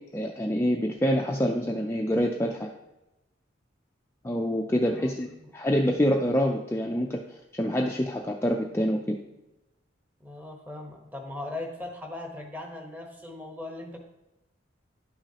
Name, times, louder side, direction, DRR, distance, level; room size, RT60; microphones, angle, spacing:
voice 1, 0.1-2.7 4.2-5.3 5.5-7.2 7.5-9.1, equal, 15° left, 1 dB, 0.4 m, -26 dB
voice 2, 4.9-5.5 10.2-14.0, left 2 dB, 10° right, 1 dB, 1.0 m, -39 dB
11.0 x 5.9 x 2.8 m, 0.97 s
head